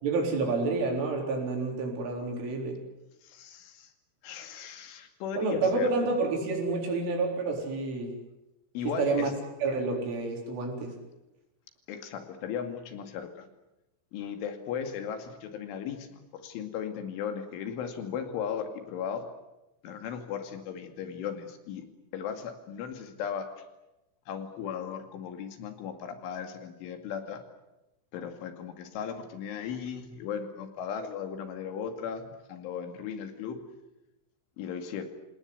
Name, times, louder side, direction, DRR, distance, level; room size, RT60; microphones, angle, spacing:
voice 1, 0.0-2.8 5.4-8.1 8.8-9.3 9.6-10.9, right 3 dB, 75° right, 1 dB, 6.5 m, -29 dB
voice 2, 3.2-3.9 4.2-5.9 8.7-9.3 11.9-13.5 14.1-19.2 19.8-21.8 22.1-23.5 24.3-27.4 28.1-33.6 34.6-35.1, left 7 dB, 75° left, 7 dB, 4.7 m, -36 dB
27.5 x 19.0 x 9.6 m, 0.97 s
omnidirectional pair, 5.7 m